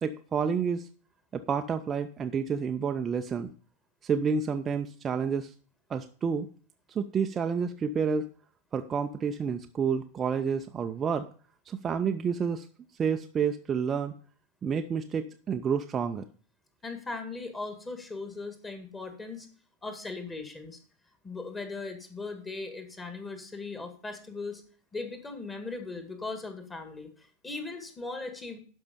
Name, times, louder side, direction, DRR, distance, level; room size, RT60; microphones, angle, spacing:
voice 1, 0.0-0.9 1.3-3.5 4.0-5.5 5.9-6.5 6.9-8.3 8.7-11.3 11.7-12.7 13.0-14.1 14.6-16.2, right 6 dB, 20° right, 6 dB, 0.6 m, -29 dB
voice 2, 16.8-19.5 19.8-20.8 21.2-24.6 24.9-28.6, left 3 dB, 15° left, 7 dB, 1.9 m, -38 dB
12.0 x 5.5 x 5.2 m, 0.43 s
figure-of-eight pair, 90°, 0 cm